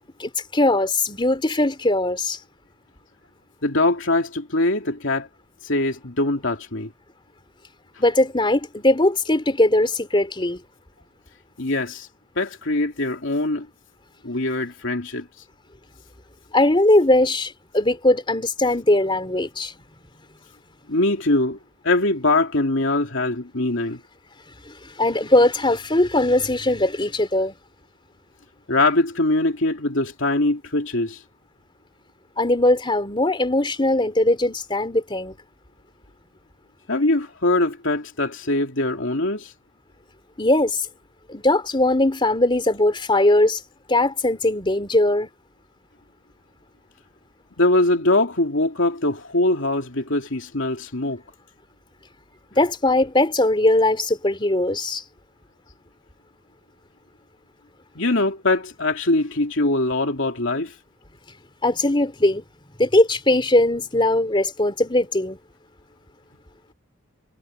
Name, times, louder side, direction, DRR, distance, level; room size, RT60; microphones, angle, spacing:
voice 1, 0.2-2.4 8.0-10.6 16.5-19.7 24.7-27.5 32.4-35.3 40.4-40.9 41.3-43.6 43.9-45.3 52.6-55.0 61.6-62.4 62.8-65.4, left 1 dB, 25° left, 3.2 m, -20 dB
voice 2, 3.6-5.3 5.6-6.9 11.6-12.1 12.4-13.7 14.2-15.3 20.9-21.6 21.8-24.0 28.7-31.2 36.9-39.5 47.6-51.2 57.9-60.7, left 2 dB, 65° left, 2.9 m, -22 dB
head